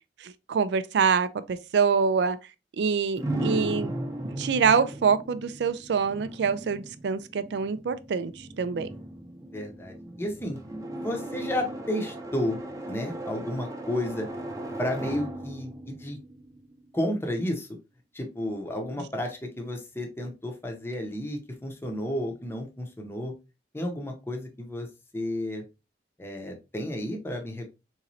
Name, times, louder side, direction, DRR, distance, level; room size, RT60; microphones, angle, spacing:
voice 1, 0.2-2.4 2.8-3.9 4.4-8.9, right 6 dB, 70° right, 0.4 m, -25 dB
sound 1, 3.2-17.0, right 1 dB, 20° right, 0.7 m, -37 dB
voice 2, 9.5-10.6 10.9-12.6 12.9-14.3 14.8-16.2 16.9-17.7 18.1-23.3 23.7-24.9 25.1-25.6 26.2-27.7, left 1 dB, 15° left, 0.7 m, -32 dB
3.9 x 3.0 x 2.6 m
head